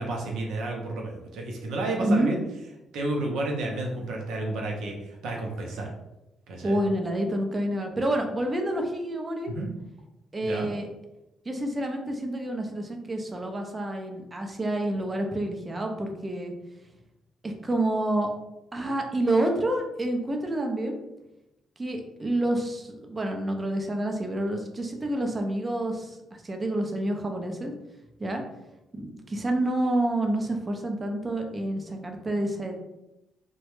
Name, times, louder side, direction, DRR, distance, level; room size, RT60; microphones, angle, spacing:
voice 1, 0.0-2.4 2.9-5.9 6.5-6.8 9.5-9.7 10.4-10.7, right 2 dB, 80° right, 0 dB, 0.6 m, -31 dB
voice 2, 2.0-2.3 6.6-9.5 10.3-10.9 11.5-16.5 17.4-18.3 18.7-21.0 21.8-27.7 28.2-28.4 28.9-32.7, right 1 dB, 25° right, 3 dB, 0.5 m, -28 dB
2.2 x 2.0 x 3.0 m, 0.92 s
cardioid pair, 90°, 0 cm